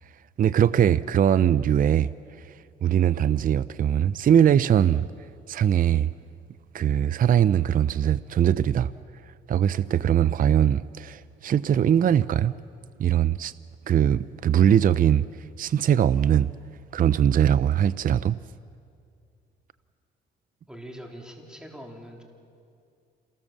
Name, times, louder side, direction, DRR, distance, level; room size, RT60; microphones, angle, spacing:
voice 1, 0.4-2.1 2.4-6.1 6.7-8.9 9.2-12.5 13.0-13.5 13.9-16.5 16.9-18.4, right 9 dB, 45° right, 0.5 m, -21 dB
voice 2, 20.7-22.2, equal, 5° right, 3.7 m, -42 dB
28.0 x 18.5 x 7.4 m
cardioid pair, 90°, 20 cm